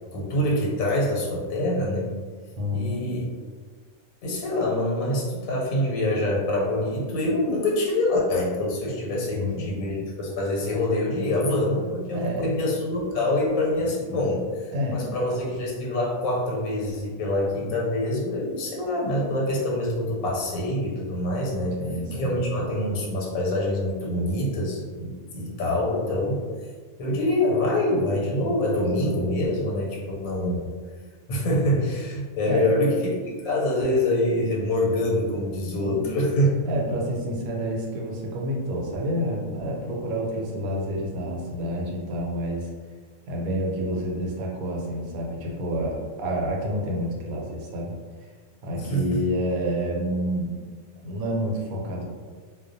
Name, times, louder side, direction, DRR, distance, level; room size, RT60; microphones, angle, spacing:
voice 1, 0.1-2.1 2.7-3.2 4.2-21.8 22.1-26.5 27.0-30.7 31.3-36.5 48.7-49.2, left 1 dB, 85° left, -3 dB, 1.1 m, -25 dB
voice 2, 2.6-3.0 9.3-9.7 12.1-12.6 14.7-15.2 17.6-17.9 21.8-22.4 32.4-32.7 35.9-36.0 36.7-42.7 43.3-47.9 48.6-50.6 51.0-52.1, equal, 85° right, -2 dB, 1.0 m, -29 dB
2.3 x 2.1 x 2.5 m, 1.5 s
omnidirectional pair, 1.4 m